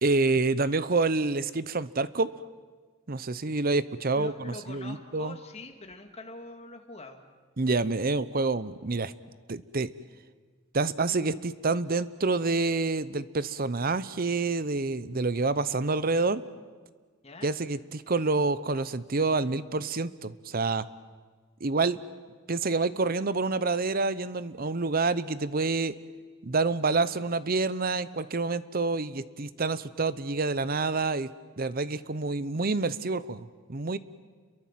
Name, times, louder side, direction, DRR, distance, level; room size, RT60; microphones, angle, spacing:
voice 1, 0.0-2.3 3.1-5.4 7.6-9.1 9.5-9.9 10.7-16.4 17.4-20.9 21.6-22.0 22.5-25.9 26.4-31.3 31.6-34.0, right 3 dB, 45° right, 16 dB, 0.8 m, -27 dB
voice 2, 4.1-7.2 17.2-17.5, left 2 dB, 30° left, 4 dB, 2.3 m, -44 dB
29.5 x 23.0 x 7.6 m, 1.5 s
head